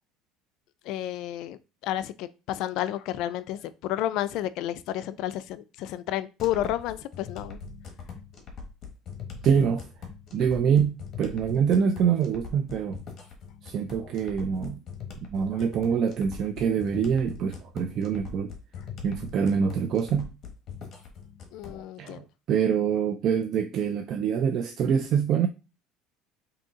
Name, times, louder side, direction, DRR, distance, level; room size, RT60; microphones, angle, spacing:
voice 1, 0.8-7.6 21.5-22.2, left 13 dB, 65° left, 0.3 m, -31 dB
sound 1, 6.4-21.8, left 5 dB, 40° left, 1.1 m, -41 dB
voice 2, 9.4-9.9 10.3-13.0 13.6-14.8 15.3-18.5 19.0-20.3 22.0-25.5, right 7 dB, 50° right, 0.3 m, -25 dB
3.8 x 2.8 x 3.6 m
cardioid pair, 130°, 0 cm